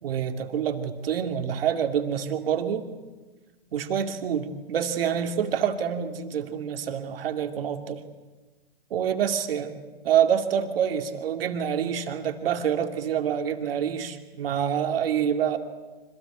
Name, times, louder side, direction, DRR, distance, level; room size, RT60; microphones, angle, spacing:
voice 1, 0.0-2.9 3.7-8.0 8.9-15.6, right 8 dB, 65° right, 5 dB, 2.7 m, -27 dB
25.5 x 18.5 x 9.1 m, 1.3 s
hypercardioid pair, 130°, 31 cm